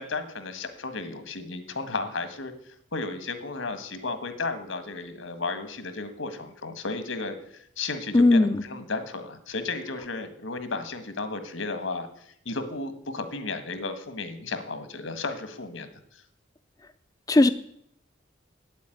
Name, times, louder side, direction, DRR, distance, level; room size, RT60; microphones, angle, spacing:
voice 1, 0.0-2.5 2.9-16.2, left 3 dB, 85° left, 9 dB, 1.6 m, -34 dB
voice 2, 8.1-8.6 17.3-17.5, left 2 dB, 20° left, 10 dB, 0.4 m, -18 dB
8.7 x 8.6 x 9.1 m, 0.70 s
head